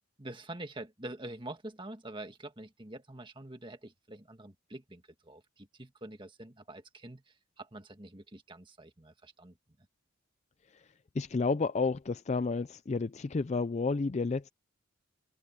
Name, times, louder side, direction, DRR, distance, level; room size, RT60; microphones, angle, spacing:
voice 1, 0.2-9.6, right 1 dB, 25° right, 1.7 m, -46 dB
voice 2, 11.1-14.5, left 4 dB, 35° left, 0.4 m, -31 dB
head